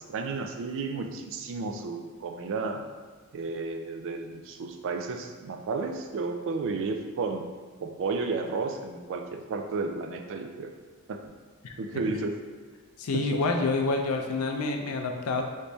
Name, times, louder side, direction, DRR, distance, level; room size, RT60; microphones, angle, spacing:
voice 1, 0.1-2.8 3.3-7.5 7.8-10.7 11.1-11.3 11.8-12.4 13.1-13.4, right 4 dB, 60° right, 5 dB, 0.3 m, -32 dB
voice 2, 13.0-15.4, left 3 dB, 90° left, 3 dB, 0.4 m, -28 dB
3.3 x 3.1 x 2.7 m, 1.5 s
head